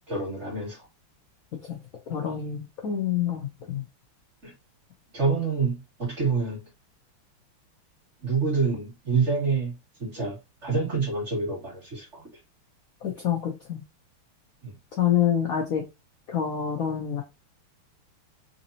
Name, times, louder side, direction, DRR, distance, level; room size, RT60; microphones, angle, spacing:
voice 1, 0.1-0.9 4.4-4.5 5.1-6.6 8.2-12.2 14.6-14.7, right 4 dB, 35° right, 2.1 m, -27 dB
voice 2, 2.1-3.8 13.0-13.8 15.0-15.8 16.3-17.2, left 9 dB, 70° left, 0.8 m, -27 dB
4.0 x 2.8 x 2.7 m
omnidirectional pair, 2.4 m